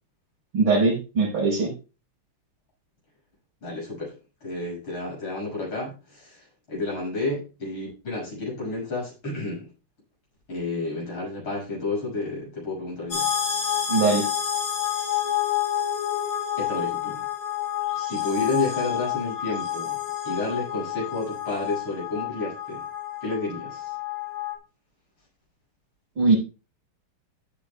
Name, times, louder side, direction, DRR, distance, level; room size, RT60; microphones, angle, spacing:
voice 1, 0.5-1.7 13.9-14.2 26.2-26.4, right 3 dB, 80° right, -5 dB, 5.7 m, -21 dB
voice 2, 3.6-4.2 4.4-9.7 10.5-13.3 16.6-17.2 17.9-20.0 20.2-22.8 23.2-24.0, left 3 dB, 75° left, -4 dB, 7.8 m, -31 dB
sound 1, 13.1-24.6, left 10 dB, 45° left, 3.1 m, -29 dB
15.5 x 8.4 x 2.4 m, 0.31 s
omnidirectional pair, 2.4 m